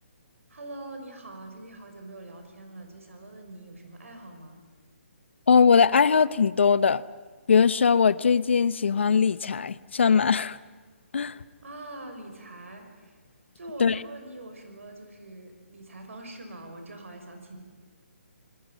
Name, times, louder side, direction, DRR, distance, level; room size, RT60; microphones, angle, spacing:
voice 1, 0.5-4.6 11.6-13.2 13.6-17.6, right 2 dB, 85° right, 5 dB, 5.8 m, -43 dB
voice 2, 5.5-7.0 7.5-10.6 11.1-11.4 13.8-13.9, left 6 dB, 60° left, 17 dB, 0.8 m, -20 dB
27.5 x 20.5 x 7.4 m, 1.4 s
hypercardioid pair, 175°, 7 cm